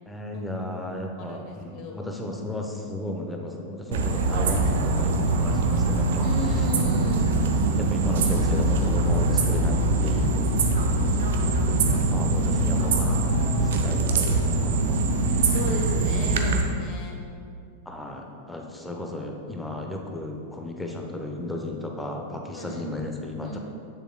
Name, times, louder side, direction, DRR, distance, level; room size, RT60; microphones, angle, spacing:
voice 1, 0.1-6.3 7.8-11.1 11.6-13.4 13.7-15.0 17.9-23.6, left 1 dB, 5° left, 1 dB, 0.8 m, -34 dB
voice 2, 0.9-2.0 6.2-7.4 12.8-14.0 15.4-17.2 22.5-23.6, left 1 dB, 40° left, 1 dB, 1.1 m, -36 dB
sound 1, 3.9-16.6, right 2 dB, 60° right, 0.5 m, -23 dB
8.0 x 6.7 x 2.2 m, 2.3 s
figure-of-eight pair, 90°, 0 cm